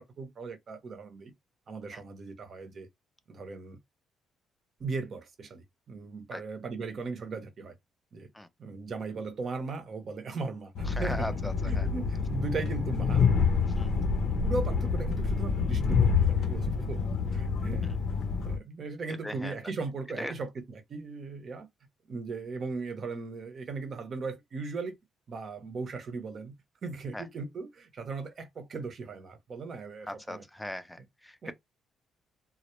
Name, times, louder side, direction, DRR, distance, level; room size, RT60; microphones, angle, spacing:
voice 1, 0.0-1.3 1.7-2.9 3.3-3.8 4.8-7.7 8.1-8.3 8.6-13.3 13.7-14.1 14.4-17.0 17.3-17.9 18.4-21.7 22.1-25.0 25.3-26.5 26.8-30.4 31.4-31.5, right 4 dB, 50° right, 0.7 m, -38 dB
Train, 10.8-18.6, left 5 dB, 70° left, 0.5 m, -27 dB
voice 2, 10.9-11.9 13.8-13.9 17.8-17.9 19.2-19.5 20.2-20.3 27.1-27.3 30.1-31.5, left 1 dB, 5° left, 0.4 m, -39 dB
2.1 x 2.0 x 2.9 m
cardioid pair, 90°, 0 cm